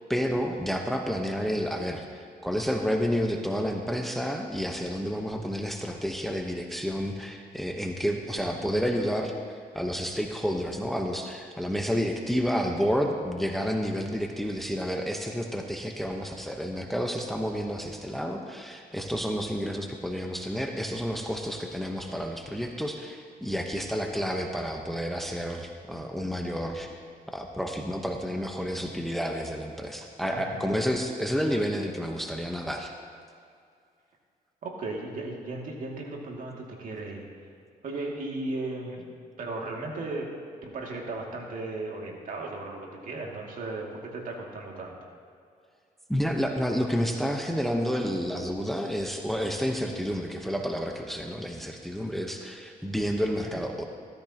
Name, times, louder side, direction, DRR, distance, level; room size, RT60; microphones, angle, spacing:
voice 1, 0.1-9.3 9.7-26.9 27.3-32.9 46.1-53.8, equal, ahead, 2 dB, 1.0 m, -30 dB
voice 2, 30.2-30.7 34.6-37.3 37.8-40.3 40.6-45.0 53.4-53.5, right 2 dB, 60° right, -1 dB, 2.3 m, -36 dB
16.0 x 14.0 x 2.9 m, 2.3 s
cardioid pair, 95°, 15 cm